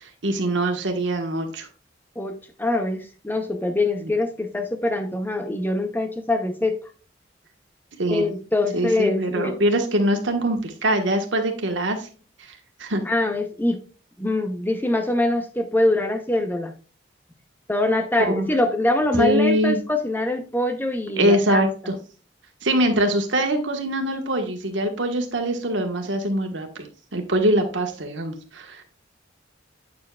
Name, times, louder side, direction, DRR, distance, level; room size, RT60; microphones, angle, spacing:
voice 1, 0.0-1.7 4.0-4.1 8.0-8.3 8.7-12.1 12.5-13.0 18.2-18.5 19.1-19.8 21.2-22.0 22.6-26.7 27.1-28.8, right 1 dB, 85° right, 1.4 m, -23 dB
voice 2, 2.2-6.8 8.1-9.5 13.1-13.8 14.2-16.7 17.7-21.6, left 2 dB, 10° left, 0.7 m, -24 dB
8.4 x 7.0 x 2.4 m
head